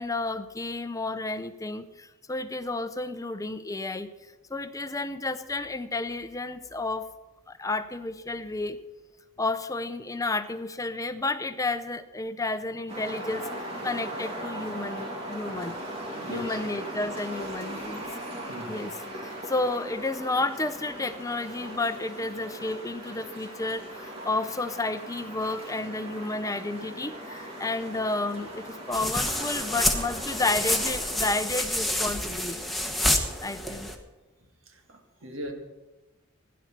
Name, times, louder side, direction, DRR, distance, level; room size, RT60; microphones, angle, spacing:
voice 1, 0.0-4.1 4.5-7.1 7.5-8.8 9.4-15.8 16.3-18.0 18.7-32.6 33.4-33.9, left 2 dB, 15° left, 0.6 m, -31 dB
sound 1, 12.9-31.3, right 1 dB, 30° right, 2.8 m, -39 dB
voice 2, 16.1-16.6 18.5-18.9 34.7-35.5, right 1 dB, 70° right, 2.2 m, -39 dB
sound 2, 28.9-33.9, left 1 dB, ahead, 1.2 m, -28 dB
16.5 x 10.5 x 6.0 m
head